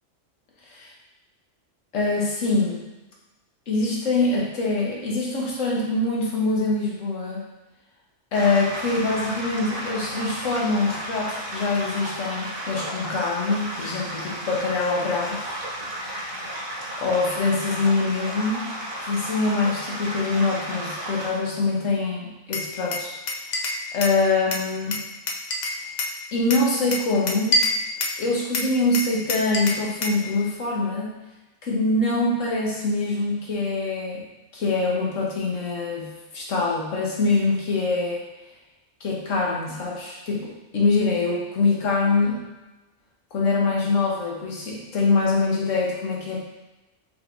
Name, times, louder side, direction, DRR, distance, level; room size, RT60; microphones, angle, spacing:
voice 1, 1.9-2.8 3.7-7.4 8.3-15.6 17.0-18.7 19.0-23.1 23.9-25.0 26.3-27.6 28.2-31.2 31.6-34.2 34.5-38.2 39.0-42.4 43.3-46.4, left 3 dB, 75° left, -3 dB, 1.4 m, -24 dB
sound 1, 8.3-21.3, right 1 dB, 45° right, 1.2 m, -33 dB
Glass, 22.5-24.2 24.5-26.2 26.5-28.2 28.5-30.2, left 2 dB, 55° left, 0.5 m, -27 dB
5.6 x 3.6 x 2.5 m, 1.1 s
omnidirectional pair, 1.3 m